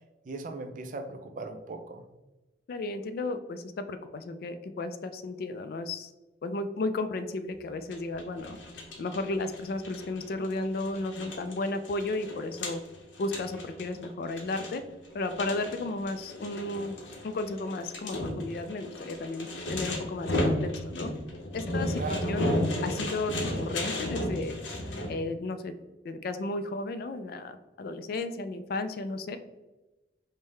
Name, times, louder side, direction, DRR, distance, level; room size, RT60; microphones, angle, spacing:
voice 1, 0.2-2.0 22.0-22.4, right 3 dB, 45° right, 5 dB, 0.4 m, -38 dB
voice 2, 2.7-6.1 6.4-8.6 9.0-12.8 13.2-14.8 15.1-17.0 17.2-21.1 21.5-22.5 22.8-24.5 25.1-25.7 26.0-29.4, left 2 dB, 50° left, 10 dB, 0.3 m, -34 dB
sound 1, 7.9-25.1, left 1 dB, 85° left, 0.8 m, -34 dB
5.3 x 2.1 x 3.2 m, 1.1 s
head